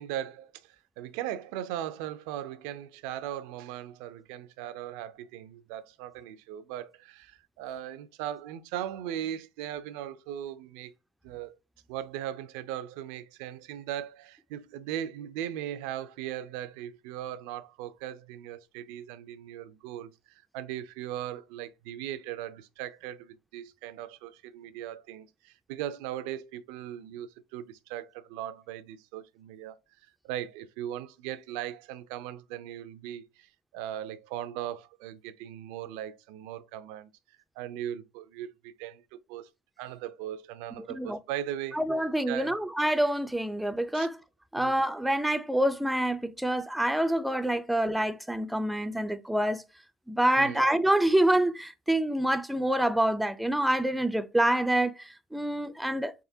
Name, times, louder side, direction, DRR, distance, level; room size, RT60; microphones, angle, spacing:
voice 1, 0.0-10.9 11.2-11.6 11.9-29.8 30.2-37.1 37.6-39.0 39.3-39.5 39.8-41.8 42.3-42.6 43.9-44.1 44.6-44.7 50.4-50.7, right 11 dB, 80° right, 0.4 m, -38 dB
voice 2, 41.7-44.2 44.5-49.6 50.1-56.1, right 1 dB, 5° right, 0.3 m, -26 dB
4.0 x 3.6 x 2.7 m
cardioid pair, 130°, 0 cm